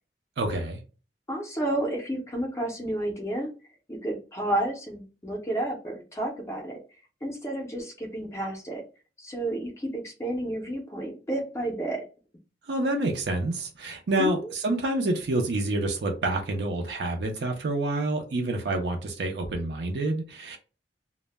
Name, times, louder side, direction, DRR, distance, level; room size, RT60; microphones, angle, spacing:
voice 1, 0.4-0.8 12.7-20.6, right 2 dB, 75° right, 0.5 m, -28 dB
voice 2, 1.3-3.5 3.9-6.8 7.2-8.8 9.2-12.0 14.2-14.5, right 1 dB, 15° left, 0.4 m, -31 dB
2.1 x 2.0 x 3.2 m
head